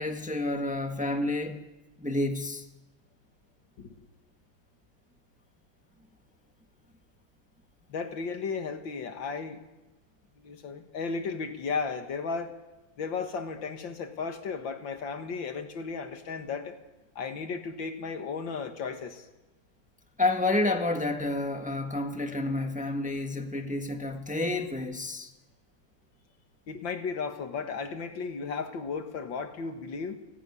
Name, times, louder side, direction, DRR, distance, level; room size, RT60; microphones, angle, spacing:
voice 1, 0.0-1.6 2.0-2.6 20.2-25.3, left 2 dB, 5° right, 1.4 m, -29 dB
voice 2, 7.9-9.6 10.4-12.6 13.0-16.8 17.2-19.3 26.7-30.2, left 5 dB, 80° left, 2.3 m, -35 dB
29.0 x 10.5 x 9.8 m
omnidirectional pair, 2.1 m